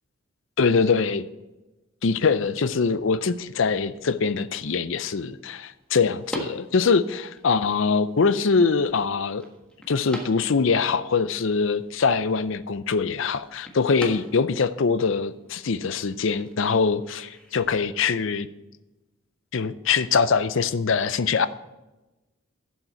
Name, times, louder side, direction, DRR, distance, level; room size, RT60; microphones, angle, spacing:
voice 1, 0.6-1.3 2.0-9.4 9.9-18.5 19.5-21.5, left 5 dB, 65° left, 14 dB, 0.5 m, -23 dB
sound 1, 2.3-17.8, equal, 5° left, 1.4 m, -44 dB
12.0 x 7.3 x 4.4 m, 1.1 s
head